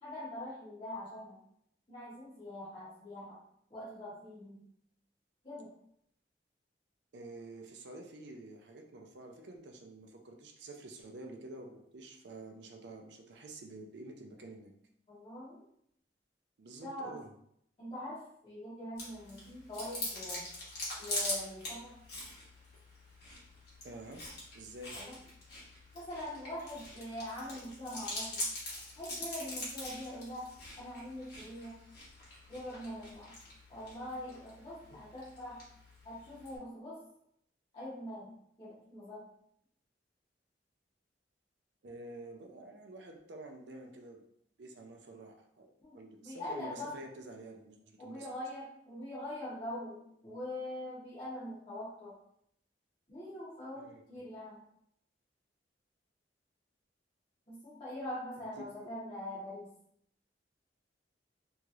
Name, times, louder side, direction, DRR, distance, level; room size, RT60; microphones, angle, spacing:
voice 1, 0.0-1.4 1.9-3.4 3.7-4.6 5.4-5.7 15.1-15.6 16.8-17.2 17.8-20.5 21.0-22.0 24.9-25.2 25.9-28.4 29.0-31.8 32.5-33.4 33.7-35.6 36.0-37.0 37.7-39.3 45.8-47.0 48.0-52.2 53.1-54.6 57.5-59.8, left 1 dB, 30° left, -10 dB, 0.9 m, -43 dB
voice 2, 7.1-14.7 16.6-17.3 23.8-24.3 24.5-25.0 41.8-44.2 44.6-48.3 53.8-54.0 58.8-58.9, right 2 dB, 70° right, 3 dB, 0.5 m, -49 dB
Chewing mastication, 19.0-36.6, left 1 dB, 65° left, 1.2 m, -43 dB
3.0 x 2.8 x 2.4 m, 0.72 s
head